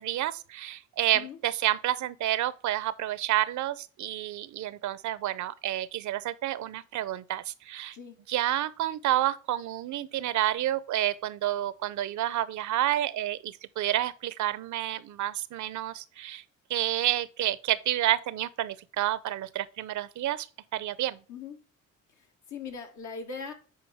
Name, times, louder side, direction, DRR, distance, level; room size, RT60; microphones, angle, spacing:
voice 1, 0.0-8.0 8.3-16.4 16.7-20.5 20.7-21.2, right 13 dB, 70° right, 0.7 m, -29 dB
voice 2, 22.2-23.5, left 5 dB, 75° left, 2.0 m, -40 dB
9.6 x 4.5 x 3.5 m
cardioid pair, 90°, 30 cm